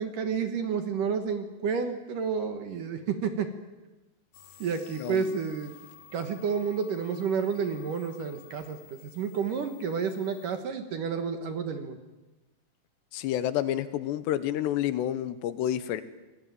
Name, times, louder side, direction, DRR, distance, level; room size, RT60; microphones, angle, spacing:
voice 1, 0.0-3.5 4.6-5.7 6.1-12.0, right 6 dB, 60° right, 8 dB, 2.6 m, -30 dB
sound 1, 4.3-10.5, left 7 dB, 55° left, 2.4 m, -53 dB
voice 2, 5.0-5.4 13.1-16.0, left 12 dB, 80° left, 13 dB, 3.2 m, -29 dB
25.5 x 19.0 x 9.4 m, 1.1 s
omnidirectional pair, 5.0 m